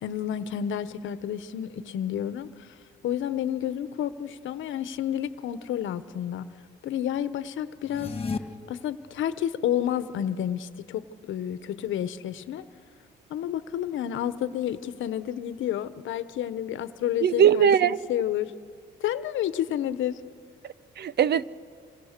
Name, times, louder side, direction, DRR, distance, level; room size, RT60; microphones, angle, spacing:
voice 1, 0.0-2.7 3.0-6.5 6.8-8.1 8.7-12.7 13.3-18.5 19.0-20.2, left 10 dB, 80° left, 1.1 m, -30 dB
sound 1, 7.8-8.4, left 4 dB, 30° left, 1.8 m, -32 dB
voice 2, 17.2-18.0 20.6-21.4, right 9 dB, 55° right, 0.7 m, -21 dB
28.0 x 26.0 x 6.7 m
cardioid pair, 90°, 20 cm